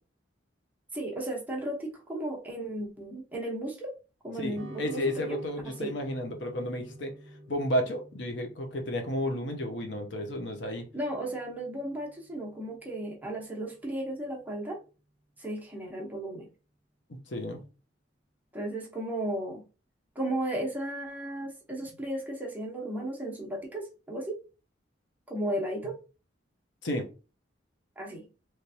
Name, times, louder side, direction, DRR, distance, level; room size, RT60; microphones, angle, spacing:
voice 1, 0.9-3.9 4.2-5.4 5.7-5.9 10.9-14.8 15.4-16.5 18.5-19.6 20.1-24.4 25.3-25.9 28.0-28.2, right 1 dB, 10° right, -2 dB, 1.0 m, -35 dB
voice 2, 4.4-7.1 7.5-10.8 17.3-17.6 26.8-27.1, equal, 70° left, 4 dB, 0.8 m, -32 dB
sound 1, 4.5-13.1, right 1 dB, 65° right, 0.7 m, -49 dB
3.2 x 3.2 x 2.8 m, 0.33 s
head